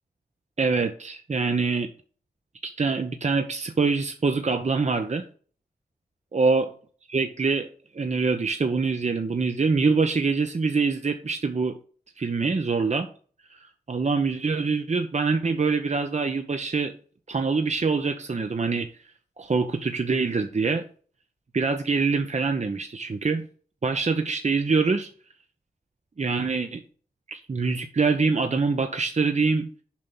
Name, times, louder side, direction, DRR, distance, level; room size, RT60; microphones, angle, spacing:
voice 1, 0.6-1.9 2.6-5.2 6.3-6.7 7.1-7.7 7.9-11.8 12.2-13.1 13.5-16.9 17.3-18.9 19.4-20.8 21.5-23.4 23.8-25.1 26.2-26.8 27.3-29.7, right 4 dB, 45° right, 6 dB, 1.0 m, -24 dB
7.4 x 5.2 x 6.1 m, 0.42 s
cardioid pair, 45°, 17 cm